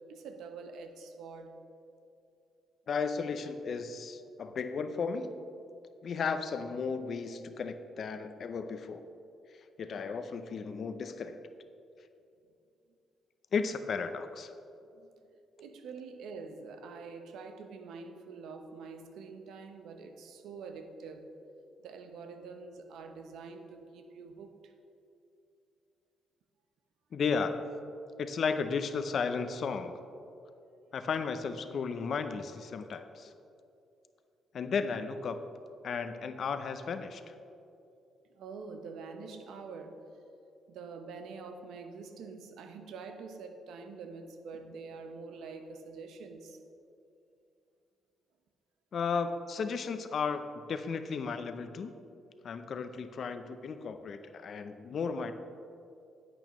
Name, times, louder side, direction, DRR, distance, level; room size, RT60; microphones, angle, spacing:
voice 1, 0.0-1.6 14.9-15.1 15.6-21.3 21.8-24.7 30.8-30.9 38.3-40.1 40.7-46.6, right 4 dB, 80° right, 7 dB, 0.7 m, -46 dB
voice 2, 2.9-5.3 6.0-9.1 9.8-11.4 13.5-14.5 27.1-27.5 28.2-30.0 30.9-33.3 34.5-35.4 35.8-37.2 48.9-50.4 50.7-51.9 52.4-55.3, left 5 dB, 55° left, 9 dB, 0.6 m, -34 dB
10.5 x 8.7 x 3.1 m, 2.7 s
cardioid pair, 90°, 0 cm